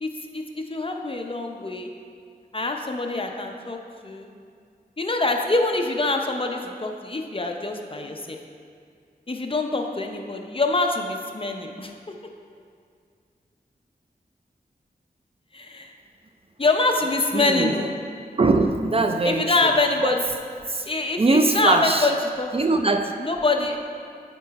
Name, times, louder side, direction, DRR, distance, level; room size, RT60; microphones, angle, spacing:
voice 1, 0.0-1.9 2.5-4.3 5.0-8.4 9.3-11.9 15.5-15.9 16.6-18.0 19.2-20.3 20.9-22.8 23.2-23.8, left 2 dB, 35° left, 3 dB, 0.6 m, -25 dB
voice 2, 17.3-17.7 18.4-19.5 20.0-20.1 21.2-22.1 22.5-23.1, right 3 dB, 35° right, 5 dB, 0.4 m, -21 dB
8.6 x 4.5 x 4.1 m, 2.2 s
wide cardioid pair, 70°, 17 cm